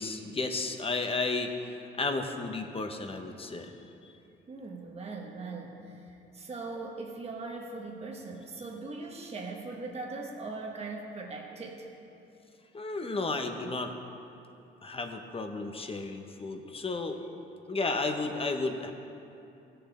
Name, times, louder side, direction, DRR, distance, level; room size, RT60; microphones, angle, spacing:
voice 1, 0.0-1.5 1.9-3.7 4.0-4.1 12.7-13.9 14.8-17.2 17.7-18.9, left 3 dB, 30° left, 5 dB, 0.9 m, -33 dB
voice 2, 4.5-11.9 13.6-13.7, right 3 dB, 30° right, 0 dB, 1.3 m, -40 dB
16.0 x 6.8 x 4.3 m, 2.7 s
cardioid pair, 90°, 20 cm